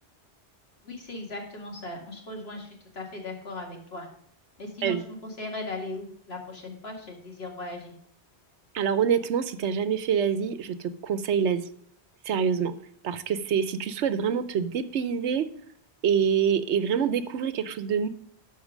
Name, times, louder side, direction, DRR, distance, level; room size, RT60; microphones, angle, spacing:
voice 1, 0.8-4.1 4.6-7.9, left 2 dB, 65° left, 1 dB, 2.3 m, -38 dB
voice 2, 8.7-11.6 12.2-12.7 13.0-15.5 16.0-18.1, right 7 dB, 80° right, 13 dB, 1.0 m, -26 dB
12.5 x 4.5 x 6.2 m, 0.65 s
omnidirectional pair, 1.1 m